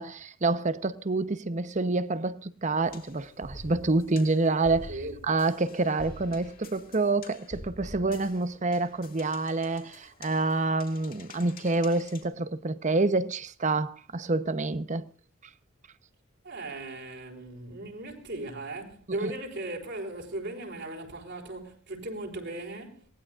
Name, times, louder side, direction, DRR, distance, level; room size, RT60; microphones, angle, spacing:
voice 1, 0.0-15.1 19.1-19.3, right 3 dB, 35° right, 0.8 m, -27 dB
sound 1, 2.8-12.2, left 2 dB, 45° left, 2.7 m, -47 dB
voice 2, 16.4-23.1, right 2 dB, 60° right, 4.2 m, -37 dB
27.0 x 19.0 x 2.4 m
head